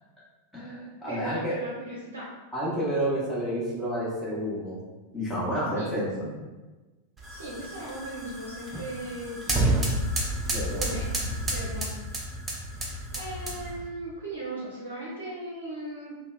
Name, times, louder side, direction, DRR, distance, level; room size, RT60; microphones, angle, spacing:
voice 1, 0.5-1.6 2.5-4.8 5.1-6.3 10.5-10.8, equal, 10° left, -8 dB, 0.9 m, -30 dB
voice 2, 1.1-2.3 5.7-6.0 7.3-9.9 10.8-11.9 12.7-16.2, right 1 dB, 65° right, -6 dB, 0.5 m, -38 dB
sound 1, 7.2-13.9, right 1 dB, 15° right, 0.5 m, -30 dB
2.7 x 2.0 x 2.2 m, 1.2 s
figure-of-eight pair, 90°, 0 cm